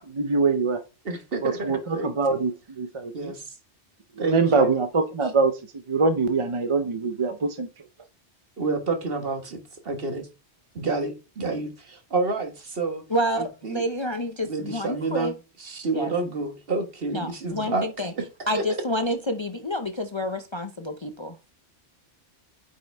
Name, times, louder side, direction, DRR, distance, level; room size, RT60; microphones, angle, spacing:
voice 1, 0.1-0.8 1.4-3.3 4.2-5.5 5.9-7.7, right 4 dB, 35° right, 0.5 m, -23 dB
voice 2, 1.0-2.4 3.1-3.4 4.2-4.7 8.6-10.3 10.7-13.0 13.4-13.8 14.5-15.3 15.6-17.9 18.1-18.2 18.5-18.6, right 3 dB, 55° right, 1.6 m, -29 dB
voice 3, 13.1-15.3 15.9-16.1 17.1-18.1 18.5-21.5, equal, 30° left, 0.5 m, -29 dB
8.9 x 5.4 x 3.4 m
omnidirectional pair, 1.2 m